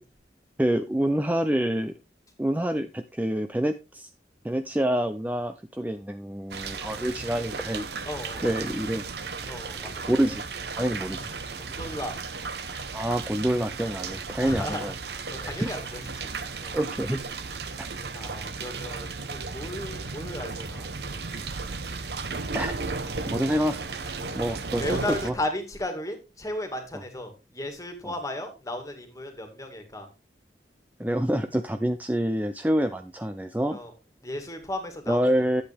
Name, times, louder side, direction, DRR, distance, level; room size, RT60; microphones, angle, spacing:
voice 1, 0.6-1.9 2.4-4.1 4.4-7.9 8.4-9.1 9.4-9.5 10.1-10.4 10.7-11.3 12.9-14.9 15.4-15.7 16.7-17.2 17.8-17.9 22.5-22.7 23.3-23.8 24.4-25.3 28.0-28.1 31.0-33.8 35.1-35.6, right 1 dB, 10° right, 8 dB, 0.4 m, -27 dB
sound 1, 6.5-25.3, right 4 dB, 70° right, 1.1 m, -35 dB
voice 2, 8.1-8.6 9.5-10.1 11.6-12.1 14.4-14.9 15.3-16.3 16.6-16.8 18.1-20.9 24.8-30.1 33.7-33.9 34.2-35.2, left 1 dB, 20° left, 6 dB, 2.0 m, -35 dB
11.5 x 7.9 x 3.5 m, 0.27 s
head